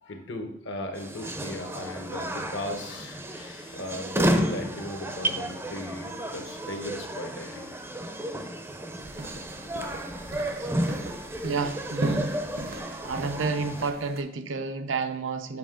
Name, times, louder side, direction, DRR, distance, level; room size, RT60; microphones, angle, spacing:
voice 1, 0.0-8.1 9.8-10.6, left 1 dB, 65° left, 5 dB, 1.1 m, -37 dB
sound 1, 0.9-13.9, right 1 dB, 10° right, 0.5 m, -32 dB
sound 2, 9.0-14.2, right 1 dB, 55° right, 0.7 m, -37 dB
voice 2, 11.4-12.4 13.0-15.6, right 4 dB, 85° right, 8 dB, 0.7 m, -30 dB
7.5 x 5.7 x 3.7 m, 0.71 s
head